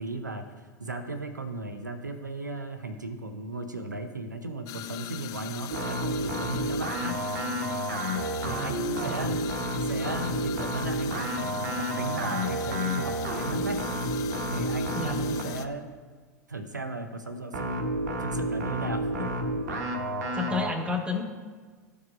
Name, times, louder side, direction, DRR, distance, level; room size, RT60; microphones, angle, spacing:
voice 1, 0.0-7.2 8.4-9.4 9.8-13.8 14.5-15.9 16.5-17.9 18.2-19.3, right 2 dB, 90° right, 9 dB, 0.6 m, -36 dB
sound 1, 4.7-15.7, left 12 dB, 40° left, 0.5 m, -39 dB
sound 2, 5.7-15.6 17.5-20.7, right 1 dB, 70° right, 0.9 m, -30 dB
voice 2, 20.3-21.2, left 4 dB, 10° right, 5 dB, 1.1 m, -31 dB
13.5 x 4.8 x 2.4 m, 1.5 s
figure-of-eight pair, 85°, 9 cm